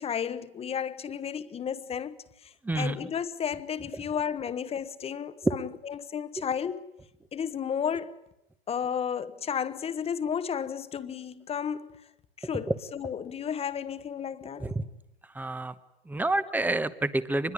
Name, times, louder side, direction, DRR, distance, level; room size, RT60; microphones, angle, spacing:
voice 1, 0.0-6.8 7.3-8.1 8.7-12.0 12.4-14.7, left 8 dB, 20° left, 1.2 m, -33 dB
voice 2, 2.6-3.1 3.9-4.0 5.4-5.5 12.7-12.8 14.6-14.8 15.3-15.7 16.1-17.5, right 2 dB, 5° right, 1.1 m, -28 dB
24.5 x 21.5 x 9.8 m
hypercardioid pair, 125°, 32 cm